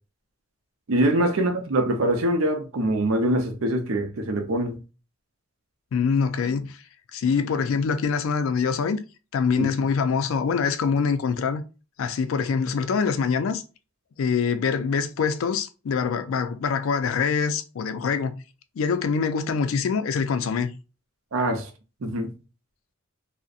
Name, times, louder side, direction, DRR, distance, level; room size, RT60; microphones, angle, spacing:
voice 1, 0.9-4.8 9.6-9.7 21.3-21.7 22.0-22.3, right 1 dB, 80° right, 0.6 m, -24 dB
voice 2, 5.9-6.8 7.1-9.0 9.3-11.6 12.0-13.6 14.2-18.3 18.8-20.7, left 5 dB, 70° left, 0.3 m, -24 dB
2.6 x 2.0 x 2.3 m
head